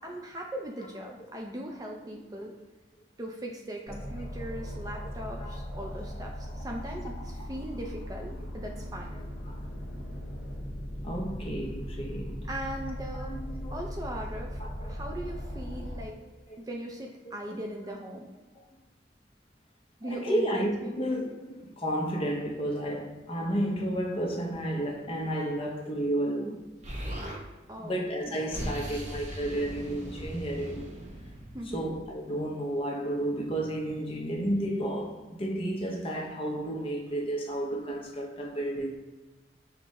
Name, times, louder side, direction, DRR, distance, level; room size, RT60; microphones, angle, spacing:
voice 1, 0.0-2.5 3.2-9.1 12.5-13.4 13.7-16.2 16.6-18.3 20.0-21.0 27.7-28.0 31.5-31.9, right 1 dB, 20° right, 0.4 m, -39 dB
sound 1, 3.9-16.1, equal, 60° left, 1.3 m, -38 dB
voice 2, 5.4-5.9 7.4-7.5 9.1-9.6 11.0-12.5 13.1-13.8 14.2-14.3 14.6-15.0 15.7-15.8 16.5-16.7 17.2-17.6 18.5-18.7 20.0-20.7 21.0-26.6 27.8-30.9 31.7-39.0, right 1 dB, 30° left, 0.6 m, -32 dB
Explosion, 26.8-27.4 28.2-32.1, equal, 40° right, 0.7 m, -39 dB
5.8 x 2.1 x 3.5 m
head